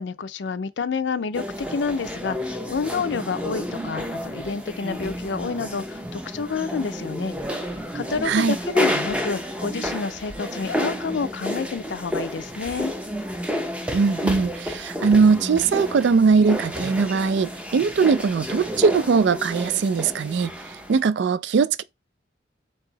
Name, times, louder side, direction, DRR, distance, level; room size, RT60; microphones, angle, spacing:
voice 1, 0.0-7.3 7.9-12.9, left 5 dB, 75° left, 0.4 m, -29 dB
sound 1, 1.3-21.0, equal, 5° right, 0.6 m, -30 dB
voice 2, 8.2-8.6 13.9-20.5 20.9-21.8, right 5 dB, 75° right, 0.4 m, -20 dB
4.6 x 2.8 x 3.9 m
head